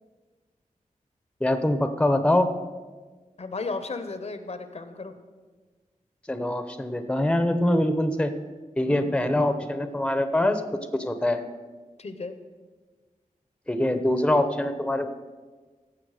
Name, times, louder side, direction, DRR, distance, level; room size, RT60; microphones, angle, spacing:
voice 1, 1.4-2.5 6.3-8.3 8.8-10.6 10.9-11.4 13.7-15.1, left 1 dB, 5° left, 9 dB, 0.8 m, -24 dB
voice 2, 3.4-5.1 8.9-9.2 12.0-12.4, left 3 dB, 50° left, 10 dB, 0.8 m, -34 dB
17.0 x 7.1 x 4.9 m, 1.4 s
wide cardioid pair, 120°, 14 cm